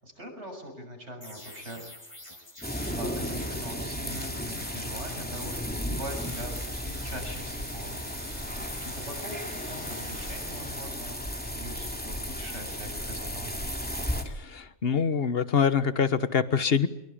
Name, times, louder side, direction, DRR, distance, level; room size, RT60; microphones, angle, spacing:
voice 1, 0.0-1.8 2.6-8.0 8.5-13.5, right 1 dB, 75° right, 3 dB, 7.2 m, -42 dB
sound 1, 1.2-12.6, left 1 dB, 25° left, 5.9 m, -46 dB
sound 2, 2.6-14.2, equal, 10° left, 2.8 m, -34 dB
voice 2, 14.2-16.9, left 6 dB, 55° left, 13 dB, 1.4 m, -25 dB
24.0 x 23.0 x 8.8 m, 0.85 s
omnidirectional pair, 1.2 m